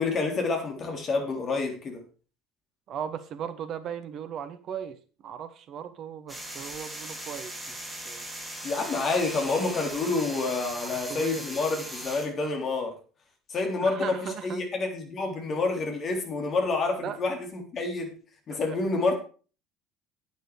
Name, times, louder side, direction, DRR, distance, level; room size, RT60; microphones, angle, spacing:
voice 1, 0.0-2.0 8.6-12.9 13.5-14.2 14.4-18.1 18.5-19.1, left 3 dB, 35° left, 3 dB, 3.5 m, -28 dB
voice 2, 2.9-8.3 10.8-11.4 13.8-14.7 17.0-17.2 18.5-18.8, right 8 dB, 45° right, 12 dB, 1.3 m, -37 dB
sound 1, 6.3-12.3, right 1 dB, 10° right, 3.9 m, -39 dB
10.5 x 9.3 x 5.0 m, 0.39 s
figure-of-eight pair, 65°, 0 cm